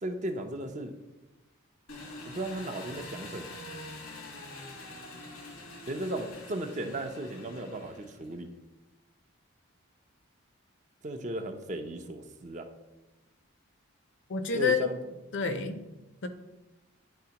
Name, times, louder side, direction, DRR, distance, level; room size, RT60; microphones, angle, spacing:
voice 1, 0.0-1.0 2.3-3.6 5.9-8.5 11.0-12.7 14.5-15.0, right 1 dB, 35° right, 6 dB, 0.5 m, -36 dB
Engine, 1.9-8.4, left 2 dB, 90° left, 1.4 m, -45 dB
voice 2, 14.3-14.9 15.3-15.8 16.2-16.3, left 5 dB, 55° left, 8 dB, 0.6 m, -28 dB
10.0 x 4.2 x 2.9 m, 1.0 s
head